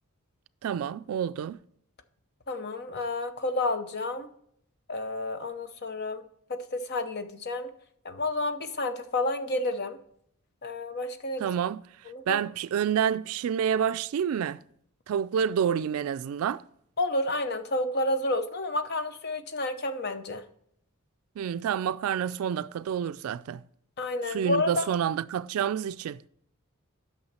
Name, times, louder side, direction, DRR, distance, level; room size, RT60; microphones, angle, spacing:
voice 1, 0.6-1.6 11.4-11.8 12.3-14.6 15.1-16.6 21.4-23.6 24.3-26.2, right 8 dB, 75° right, 0.3 m, -28 dB
voice 2, 2.5-4.3 4.9-6.2 6.5-7.7 8.0-10.0 10.6-11.4 12.1-12.4 17.0-20.4 24.0-24.9, left 2 dB, 50° left, 0.7 m, -30 dB
8.7 x 6.2 x 4.2 m
head